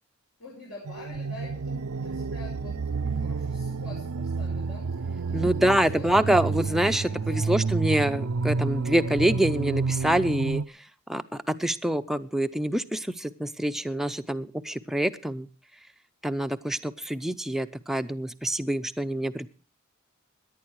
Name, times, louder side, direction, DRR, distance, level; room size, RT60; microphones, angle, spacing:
voice 1, 0.4-7.6, left 2 dB, 65° left, -4 dB, 5.8 m, -46 dB
sound 1, 0.8-10.6, right 4 dB, 85° right, 0.6 m, -30 dB
voice 2, 5.3-15.5 16.2-19.5, right 1 dB, ahead, 8 dB, 0.6 m, -26 dB
17.5 x 11.0 x 4.7 m, 0.37 s
head